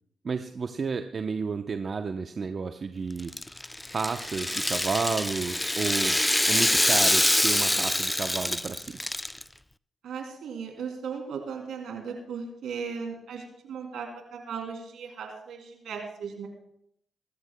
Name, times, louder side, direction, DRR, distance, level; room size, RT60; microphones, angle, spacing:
voice 1, 0.2-3.3 3.9-6.2 6.5-8.9, right 5 dB, 50° right, 7 dB, 0.8 m, -31 dB
Rattle (instrument), 3.2-9.4, left 1 dB, 10° left, 0.4 m, -25 dB
voice 2, 10.0-16.5, right 6 dB, 75° right, 2 dB, 3.1 m, -37 dB
23.5 x 13.0 x 2.3 m, 0.73 s
hypercardioid pair, 45°, 0 cm